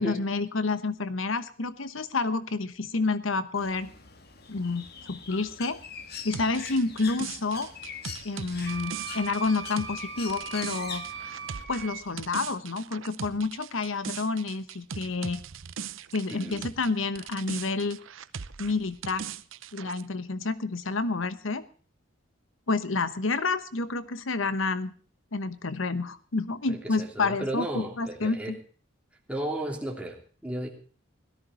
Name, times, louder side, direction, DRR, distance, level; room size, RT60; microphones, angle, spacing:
voice 1, 0.0-3.9 4.5-5.8 6.2-7.7 8.2-11.0 11.7-15.4 16.1-18.0 18.6-19.3 19.7-21.6 22.7-24.9 25.3-28.6, left 3 dB, 85° left, 14 dB, 1.1 m, -29 dB
Bird, 3.5-11.6, left 6 dB, 55° left, 1.8 m, -43 dB
sound 1, 6.3-16.9 17.2-20.0, right 6 dB, 85° right, 0.7 m, -40 dB
Wind instrument woodwind instrument, 8.7-12.0, right 6 dB, 65° right, 2.6 m, -39 dB
voice 2, 16.3-16.7 26.7-28.5 29.3-30.7, right 1 dB, 5° right, 1 dB, 3.2 m, -34 dB
17.5 x 13.5 x 4.1 m, 0.41 s
head